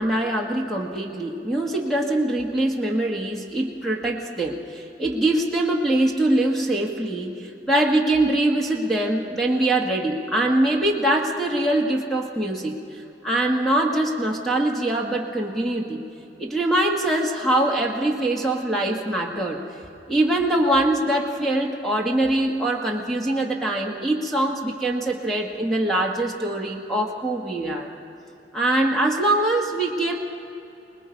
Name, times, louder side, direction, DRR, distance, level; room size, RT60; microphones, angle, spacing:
voice 1, 0.0-16.0 16.4-19.6 20.1-27.9 28.5-30.2, right 1 dB, ahead, -1 dB, 1.7 m, -23 dB
25.5 x 20.0 x 5.3 m, 2.8 s
head